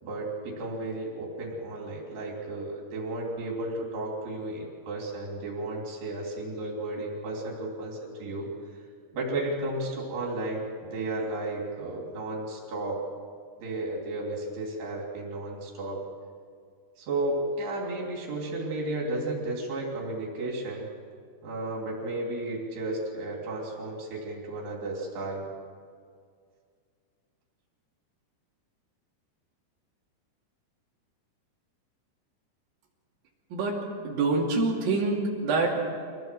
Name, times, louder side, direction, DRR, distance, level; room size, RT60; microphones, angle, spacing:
voice 1, 0.0-8.5 9.1-13.0 13.6-16.0 17.0-20.9 21.4-25.5, right 2 dB, 80° right, -1 dB, 5.4 m, -33 dB
voice 2, 34.0-35.8, right 3 dB, 60° right, -4 dB, 4.3 m, -26 dB
25.0 x 17.5 x 7.8 m, 2.1 s
omnidirectional pair, 4.7 m